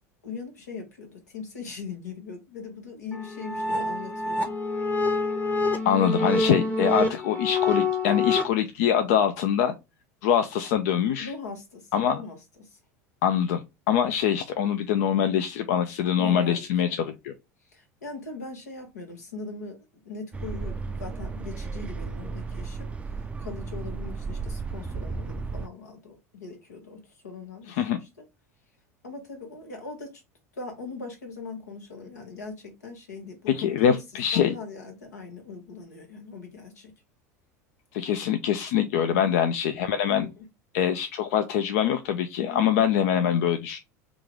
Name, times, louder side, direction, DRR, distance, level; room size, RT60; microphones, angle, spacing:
voice 1, 0.2-4.6 6.9-7.1 11.2-12.8 16.2-16.7 17.6-28.1 29.0-30.2 30.5-33.5 33.8-34.0 34.3-36.9 39.1-39.4 40.2-40.5 42.5-42.7, left 4 dB, 90° left, 4 dB, 1.2 m, -40 dB
sound 1, 3.1-8.4, left 2 dB, 20° left, 0.9 m, -26 dB
voice 2, 5.8-9.7 10.2-11.3 11.9-12.2 13.2-17.3 27.7-28.0 33.5-34.5 37.9-40.3 40.7-43.8, left 9 dB, 70° left, 9 dB, 0.4 m, -24 dB
sound 2, 20.3-25.7, right 4 dB, 15° right, 0.3 m, -34 dB
3.6 x 2.4 x 3.0 m, 0.24 s
hypercardioid pair, 85°, 9 cm